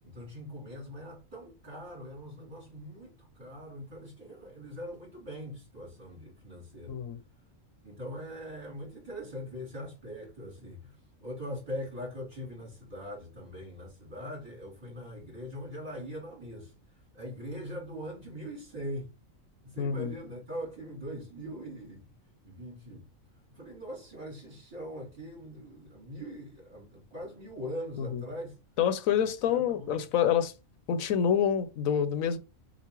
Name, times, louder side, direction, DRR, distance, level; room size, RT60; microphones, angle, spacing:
voice 1, 0.0-7.0 7.3-7.4 7.8-19.1 19.6-22.1 22.4-28.6 29.2-29.9, equal, 35° right, 2.9 m, -42 dB
voice 2, 19.8-20.1 28.8-30.5 30.9-32.4, left 8 dB, 85° left, 1.1 m, -27 dB
6.8 x 2.4 x 3.0 m
omnidirectional pair, 1.4 m